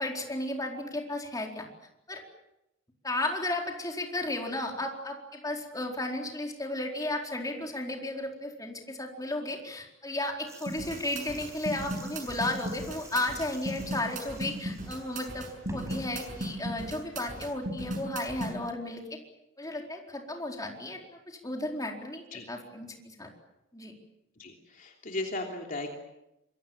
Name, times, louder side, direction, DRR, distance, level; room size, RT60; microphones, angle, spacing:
voice 1, 0.0-1.6 2.1-2.2 3.0-19.0 19.6-21.0 21.3-23.3 23.7-23.9, left 2 dB, 20° left, 1 dB, 4.4 m, -34 dB
sound 1, 10.5-16.7, right 1 dB, 15° right, 6.9 m, -49 dB
sound 2, 10.7-18.5, right 1 dB, 45° right, 6.9 m, -36 dB
voice 2, 24.4-25.9, left 2 dB, 45° left, 1 dB, 3.2 m, -36 dB
26.5 x 23.5 x 7.4 m, 0.87 s
head